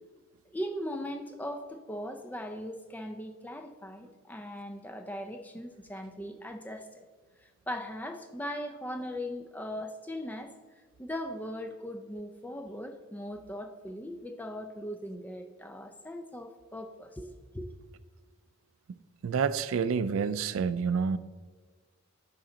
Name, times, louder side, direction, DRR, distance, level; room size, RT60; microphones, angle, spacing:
voice 1, 0.5-7.0 7.4-10.5 11.0-17.8, equal, 10° left, 0.4 m, -39 dB
voice 2, 19.2-21.2, right 6 dB, 70° right, 0.3 m, -28 dB
10.0 x 3.9 x 3.8 m
head